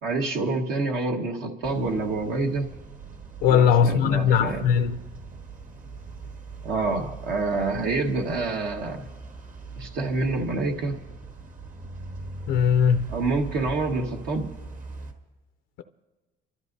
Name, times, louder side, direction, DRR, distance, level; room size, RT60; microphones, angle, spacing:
voice 1, 0.0-2.7 3.4-4.7 6.6-9.1 9.8-11.0 13.1-14.5, right 3 dB, 70° right, 1.5 m, -27 dB
sound 1, 1.6-15.1, right 4 dB, 50° right, 1.8 m, -41 dB
voice 2, 3.4-4.9 12.5-13.1, left 7 dB, 90° left, 0.5 m, -19 dB
29.0 x 13.0 x 2.7 m
cardioid pair, 110°, 17 cm